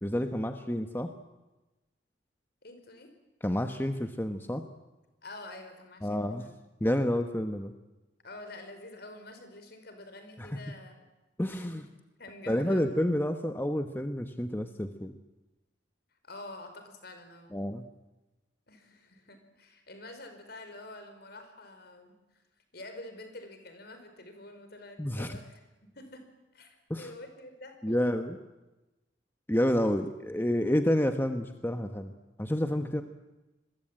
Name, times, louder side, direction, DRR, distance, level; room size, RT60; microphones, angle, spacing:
voice 1, 0.0-1.1 3.4-4.6 6.0-6.5 6.8-7.7 10.4-10.5 11.4-11.8 12.5-15.1 17.5-17.9 25.0-25.4 26.9-27.1 27.8-28.4 29.5-32.1 32.4-33.0, equal, 10° left, 7 dB, 1.1 m, -29 dB
voice 2, 2.6-3.1 5.2-6.5 8.2-11.0 11.5-11.9 12.2-12.8 16.2-17.6 18.7-22.2 22.7-25.6 25.9-26.2 26.5-28.1, left 2 dB, 55° left, 7 dB, 5.1 m, -47 dB
27.5 x 22.0 x 9.0 m, 1.1 s
head